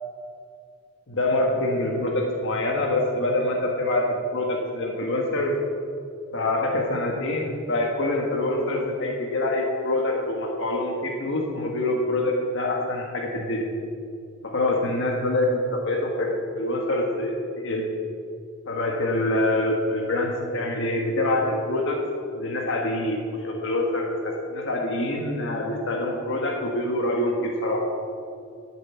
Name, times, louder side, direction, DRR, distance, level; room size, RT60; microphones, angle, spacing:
voice 1, 1.1-5.5 6.3-13.7 14.4-17.9 18.6-22.0 22.3-27.8, left 1 dB, 65° left, 0 dB, 1.5 m, -25 dB
11.5 x 7.6 x 7.3 m, 2.4 s
head